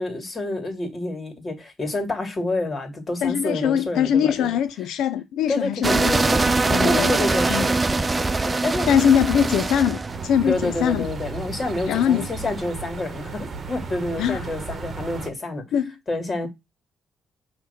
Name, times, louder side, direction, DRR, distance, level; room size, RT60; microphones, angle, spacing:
voice 1, 0.0-4.5 5.5-6.5 6.8-8.9 10.4-15.6 16.1-16.5, left 2 dB, 30° left, 2.4 m, -28 dB
voice 2, 3.2-6.2 6.5-7.1 7.5-7.7 8.9-11.1 11.9-12.3 14.2-14.4 15.7-15.9, left 9 dB, 80° left, 0.4 m, -22 dB
sound 1, 5.8-12.6, right 3 dB, 25° right, 0.4 m, -22 dB
sound 2, 10.1-15.3, right 4 dB, 40° right, 1.2 m, -35 dB
6.1 x 3.0 x 5.7 m
cardioid pair, 90°, 0 cm